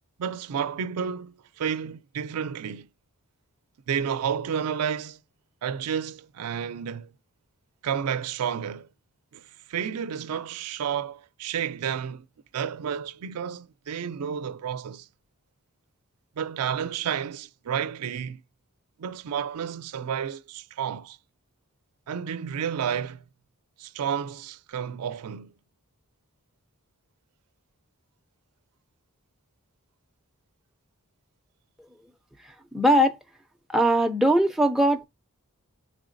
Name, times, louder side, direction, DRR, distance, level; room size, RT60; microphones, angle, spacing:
voice 1, 0.2-2.9 3.9-5.2 5.6-7.1 7.8-8.9 9.3-12.3 12.5-15.1 16.4-18.4 19.0-21.2 22.1-23.2 23.8-25.5, right 8 dB, 90° right, 0.4 m, -31 dB
voice 2, 32.7-33.2 33.7-35.1, equal, ahead, 0.3 m, -20 dB
3.8 x 3.4 x 2.5 m
head